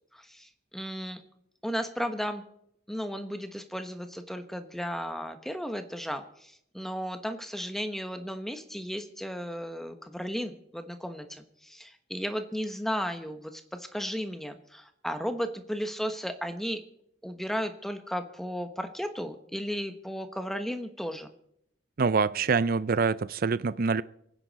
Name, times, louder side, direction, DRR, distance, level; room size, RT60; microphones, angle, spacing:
voice 1, 0.1-1.2 1.6-2.4 2.9-16.8 17.2-21.3, equal, ahead, 1.1 m, -34 dB
voice 2, 22.0-24.0, right 5 dB, 50° right, 0.5 m, -25 dB
27.0 x 9.8 x 4.1 m
head